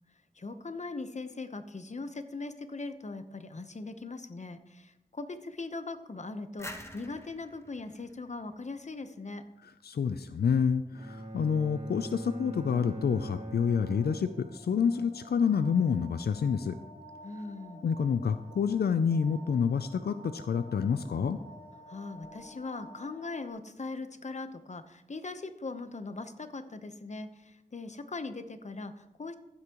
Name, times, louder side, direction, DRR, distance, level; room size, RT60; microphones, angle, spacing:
voice 1, 0.3-9.4 17.2-17.8 21.9-29.3, left 3 dB, 45° left, 9 dB, 0.9 m, -40 dB
sound 1, 6.6-9.3, left 1 dB, 15° left, 1.1 m, -47 dB
voice 2, 9.8-16.8 17.8-21.4, left 6 dB, 85° left, 11 dB, 0.4 m, -28 dB
Bowed string instrument, 10.9-15.0, right 1 dB, 45° right, 2.0 m, -42 dB
sound 2, 12.9-23.5, equal, 65° left, 1.9 m, -52 dB
14.5 x 8.2 x 3.0 m, 0.92 s
wide cardioid pair, 50°, 16 cm